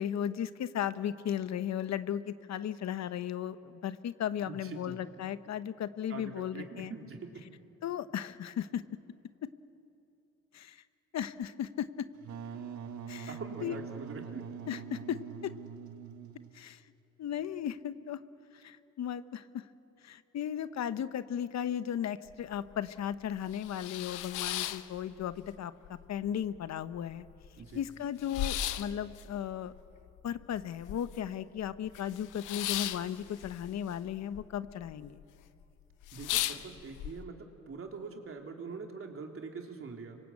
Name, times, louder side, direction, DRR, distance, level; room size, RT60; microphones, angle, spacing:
voice 1, 0.0-6.9 7.8-8.8 10.5-10.8 11.1-12.1 13.1-13.3 13.6-13.8 14.7-15.5 16.5-16.8 17.2-18.2 18.5-19.7 20.0-25.7 26.1-27.3 27.7-29.7 30.2-35.2, left 9 dB, 60° left, 13 dB, 1.0 m, -36 dB
voice 2, 4.5-5.0 6.1-7.5 12.5-12.7 13.3-14.5 27.6-27.8 36.1-40.2, right 4 dB, 45° right, 3 dB, 3.4 m, -44 dB
Wind instrument woodwind instrument, 12.2-16.7, right 6 dB, 70° right, 1.6 m, -43 dB
sound 1, 22.3-22.4 22.8-22.9 23.3-25.5 25.8-26.6 26.9-27.0 27.2-31.4 31.6-34.4 34.7-35.2 35.6-35.7 36.0-37.1, left 12 dB, 90° left, 1.0 m, -36 dB
26.0 x 24.0 x 8.6 m, 2.7 s
cardioid pair, 90°, 30 cm